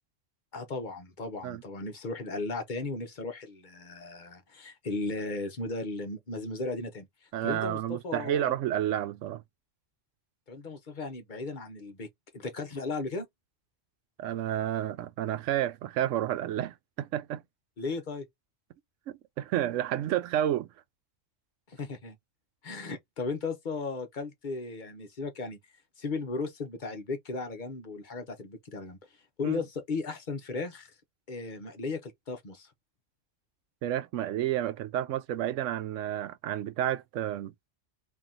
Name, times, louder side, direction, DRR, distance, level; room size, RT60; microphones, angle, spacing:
voice 1, 0.5-8.6 10.5-13.3 17.8-18.3 21.7-22.2 22.6-25.6 26.0-29.0 29.4-30.9 31.3-32.7, left 3 dB, 45° left, 0.9 m, -36 dB
voice 2, 7.3-9.4 14.2-17.4 19.1-20.7 29.4-29.6 33.8-37.5, right 11 dB, 80° right, 0.9 m, -30 dB
2.9 x 2.8 x 3.7 m
omnidirectional pair, 1.3 m